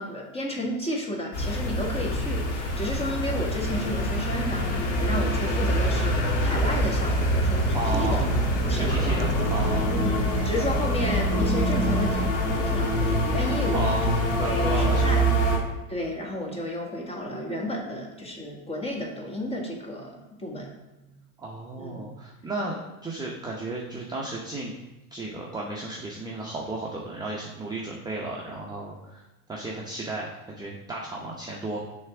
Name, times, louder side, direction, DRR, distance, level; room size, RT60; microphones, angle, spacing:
voice 1, 0.0-8.3 8.6-9.2 9.9-14.2 14.5-15.2 15.9-20.7 21.0-21.1 21.8-22.1, left 1 dB, 15° left, -1 dB, 1.5 m, -32 dB
sound 1, 1.3-15.6, equal, 60° left, 2.2 m, -25 dB
sound 2, 5.0-12.3, right 5 dB, 75° right, 0.7 m, -31 dB
voice 2, 7.7-8.2 8.7-9.9 13.7-15.3 21.4-24.7 25.1-29.2 29.5-31.8, right 2 dB, 10° right, -3 dB, 0.8 m, -34 dB
6.3 x 3.5 x 5.8 m, 1.1 s
supercardioid pair, 110°, 45 cm